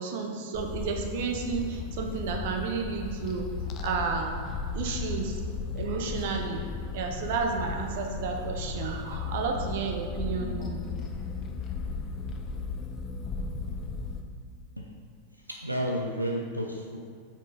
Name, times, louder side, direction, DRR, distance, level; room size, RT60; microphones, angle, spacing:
voice 1, 0.0-4.4 4.7-5.4 5.7-6.6 6.9-10.9, right 5 dB, 50° right, 3 dB, 0.7 m, -32 dB
sound 1, 0.5-14.2, left 4 dB, 30° left, 0.5 m, -35 dB
voice 2, 15.3-17.0, equal, 90° right, 0 dB, 0.5 m, -32 dB
5.9 x 4.5 x 4.1 m, 2.2 s
figure-of-eight pair, 90°, 0 cm